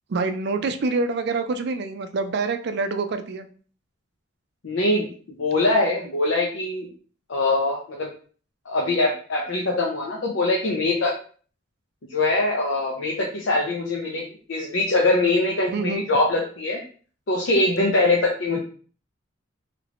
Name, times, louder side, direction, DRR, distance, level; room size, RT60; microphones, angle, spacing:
voice 1, 0.1-3.5 15.7-16.0, right 3 dB, 55° right, 9 dB, 0.4 m, -26 dB
voice 2, 4.6-6.9 7.3-8.1 8.7-11.1 12.1-16.8 17.3-18.6, left 2 dB, 80° left, -2 dB, 0.6 m, -23 dB
3.3 x 3.2 x 2.4 m, 0.42 s
head